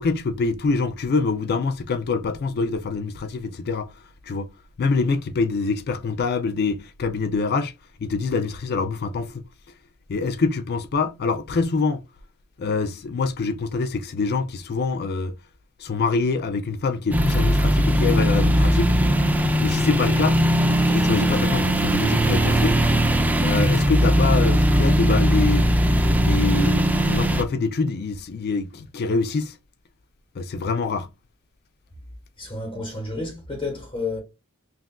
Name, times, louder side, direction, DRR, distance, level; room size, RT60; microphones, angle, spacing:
voice 1, 0.0-4.5 4.8-7.7 8.0-9.4 10.1-12.0 12.6-15.3 15.8-19.0 19.6-20.4 20.9-22.8 23.4-25.7 26.2-29.6 30.4-31.1, left 4 dB, 45° left, 0.4 m, -25 dB
sound 1, 17.1-27.4, equal, 5° right, 0.5 m, -19 dB
voice 2, 32.4-34.2, left 3 dB, 25° left, 1.1 m, -30 dB
5.8 x 2.5 x 2.2 m
head